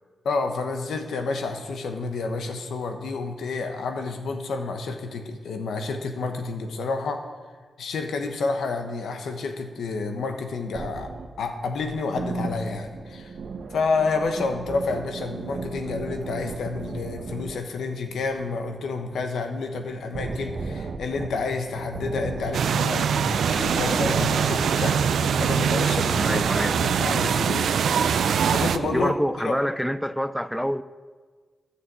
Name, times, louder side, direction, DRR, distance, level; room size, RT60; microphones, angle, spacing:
voice 1, 0.2-7.3 7.8-11.1 11.4-13.3 13.7-26.5 26.8-28.2 28.5-29.6, left 3 dB, 85° left, 1.1 m, -29 dB
sound 1, 10.7-17.6 17.9-29.1, right 4 dB, 70° right, 0.9 m, -36 dB
sound 2, 22.5-28.8, right 7 dB, 85° right, 0.4 m, -23 dB
voice 2, 26.2-26.8 28.8-30.8, equal, ahead, 0.4 m, -26 dB
11.5 x 6.6 x 7.5 m
cardioid pair, 65°, 0 cm